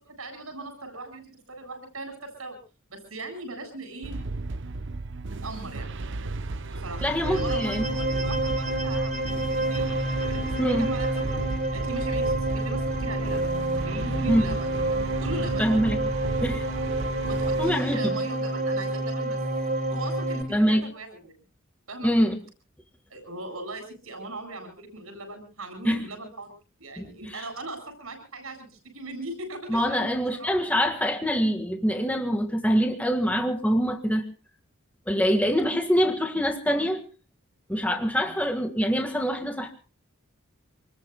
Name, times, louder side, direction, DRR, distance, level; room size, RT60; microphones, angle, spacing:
voice 1, 0.2-2.6 2.9-4.2 5.3-5.9 6.7-9.9 10.2-11.4 11.7-14.8 15.2-15.8 17.3-19.4 19.9-21.3 21.9-22.1 23.1-26.5 26.8-30.1 30.3-30.6 38.2-38.4, right 2 dB, 85° right, 7.9 m, -39 dB
sound 1, 4.0-17.8, right 2 dB, 60° right, 0.7 m, -34 dB
sound 2, 6.9-20.4, right 1 dB, 40° right, 3.5 m, -28 dB
voice 2, 7.0-7.8 10.6-10.9 14.3-14.4 15.6-16.0 16.4-16.6 17.6-18.2 20.5-20.8 22.0-22.4 25.8-26.0 27.0-27.4 29.7-34.2 35.1-37.0 37.7-39.7, equal, 5° left, 1.7 m, -24 dB
28.0 x 21.0 x 2.3 m
head